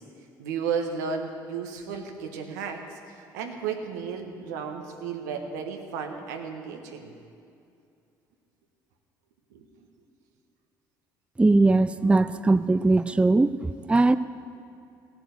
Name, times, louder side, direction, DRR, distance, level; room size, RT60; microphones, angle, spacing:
voice 1, 0.4-7.1 9.5-9.6, right 6 dB, 85° right, 3 dB, 1.5 m, -33 dB
voice 2, 11.4-14.2, right 2 dB, 10° right, 13 dB, 0.5 m, -20 dB
16.5 x 7.6 x 8.1 m, 2.5 s
hypercardioid pair, 65°, 9 cm